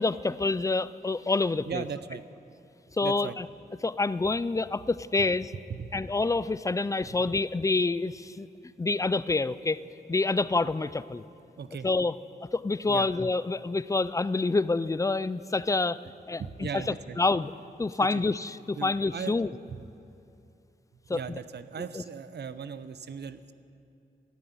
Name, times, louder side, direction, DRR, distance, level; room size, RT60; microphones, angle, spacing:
voice 1, 0.0-1.8 3.0-3.5 3.8-5.5 5.9-8.5 8.8-9.8 10.1-11.2 11.8-12.1 12.5-16.0 16.3-17.5 17.8-19.5 21.1-21.4 21.9-22.0, left 3 dB, 20° left, 17 dB, 0.3 m, -27 dB
voice 2, 1.6-2.2 3.0-3.4 5.7-5.9 11.6-11.9 12.9-13.1 16.4-17.2 18.1-18.3 18.8-19.4 19.7-19.8 21.1-23.5, right 6 dB, 75° right, 13 dB, 0.6 m, -37 dB
12.5 x 11.0 x 9.4 m, 2.6 s
wide cardioid pair, 130°, 18 cm